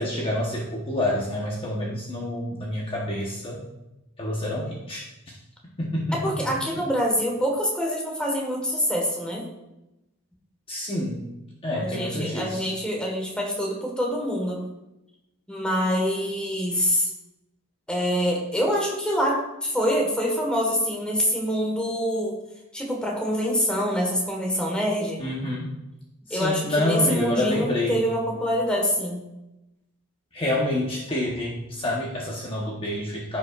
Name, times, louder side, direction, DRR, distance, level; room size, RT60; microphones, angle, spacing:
voice 1, 0.0-3.6 4.2-5.3 5.8-6.2 10.7-11.2 11.6-12.7 25.2-25.8 26.3-28.1 30.3-33.4, left 1 dB, 25° left, -4 dB, 1.1 m, -28 dB
voice 2, 6.1-9.4 11.7-14.6 15.5-17.1 17.9-22.4 22.7-25.2 26.3-29.2, equal, 5° left, -1 dB, 1.5 m, -25 dB
14.5 x 5.5 x 2.5 m, 0.94 s
head